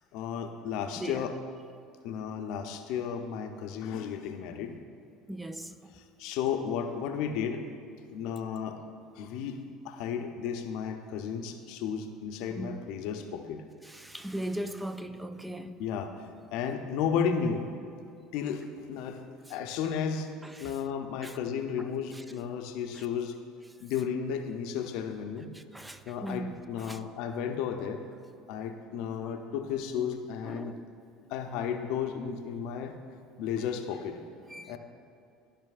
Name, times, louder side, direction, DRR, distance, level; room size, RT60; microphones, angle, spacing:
voice 1, 0.1-1.4 2.0-4.8 5.9-7.6 8.1-8.8 9.2-13.6 15.8-16.2 16.5-17.7 18.3-19.2 19.5-20.3 20.6-23.4 23.8-25.5 26.1-28.0 28.5-30.7 31.3-32.9 33.4-34.2 34.7-34.8, left 7 dB, 65° left, 0.6 m, -33 dB
voice 2, 5.3-5.8 12.5-12.8 13.9-15.8 20.6-20.7 21.2-21.3 25.5-26.6 26.9-27.0 30.5-30.7 34.5-34.8, right 1 dB, 10° right, 0.4 m, -38 dB
14.0 x 5.1 x 2.5 m
hypercardioid pair, 70°, 0 cm